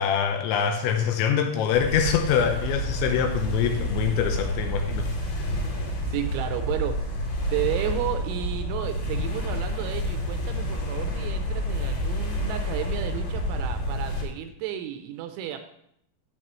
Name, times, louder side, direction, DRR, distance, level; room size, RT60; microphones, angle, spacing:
voice 1, 0.0-5.1, left 7 dB, 80° left, 5 dB, 2.9 m, -24 dB
sound 1, 1.7-14.2, equal, 65° left, 4.3 m, -29 dB
voice 2, 5.9-7.0 7.5-15.6, right 11 dB, 80° right, 7 dB, 2.9 m, -32 dB
10.5 x 8.6 x 3.1 m, 0.71 s
omnidirectional pair, 5.7 m